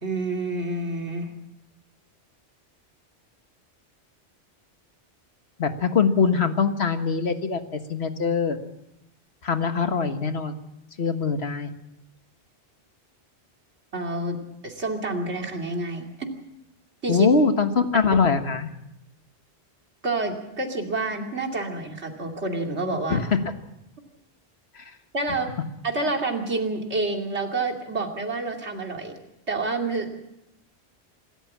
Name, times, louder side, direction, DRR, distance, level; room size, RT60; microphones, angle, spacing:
voice 1, 0.0-1.3 13.9-14.4 14.6-16.3 17.0-17.3 20.0-23.2 25.1-25.5 25.8-29.1 29.5-30.2, right 2 dB, 80° right, 2 dB, 3.0 m, -28 dB
voice 2, 5.6-8.6 9.4-10.6 11.0-11.7 17.1-18.7 23.1-23.3 24.8-24.9, left 5 dB, 70° left, 7 dB, 1.7 m, -23 dB
26.0 x 13.5 x 7.4 m, 0.89 s
omnidirectional pair, 1.1 m